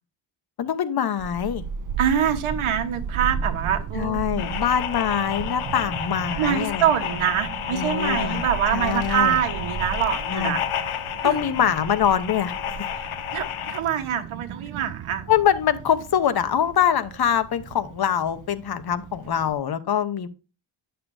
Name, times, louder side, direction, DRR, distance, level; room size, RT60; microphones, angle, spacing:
voice 1, 0.6-1.7 3.9-6.9 7.7-8.4 8.7-9.4 10.3-10.6 11.2-12.9 15.3-20.3, left 9 dB, 50° left, 0.9 m, -24 dB
Child speech kid speaking / Wind, 1.2-19.5, right 6 dB, 45° right, 0.4 m, -35 dB
voice 2, 2.0-4.4 6.4-10.6 11.2-11.4 13.0-15.2, right 9 dB, 80° right, 1.3 m, -25 dB
sound 1, 4.4-13.8, left 9 dB, 80° left, 1.0 m, -31 dB
10.0 x 6.7 x 2.6 m
cardioid pair, 85°, 49 cm